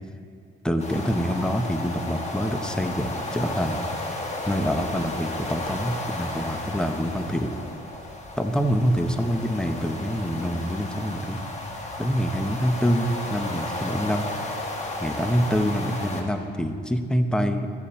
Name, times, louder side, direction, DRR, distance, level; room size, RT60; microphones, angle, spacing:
voice 1, 0.6-3.8 4.5-7.5 8.4-11.4 12.0-14.3 15.0-17.7, equal, 5° left, 6 dB, 0.8 m, -26 dB
sound 1, 0.8-16.2, left 1 dB, 35° left, 1.4 m, -34 dB
14.0 x 7.1 x 4.3 m, 2.3 s
cardioid pair, 90°, 20 cm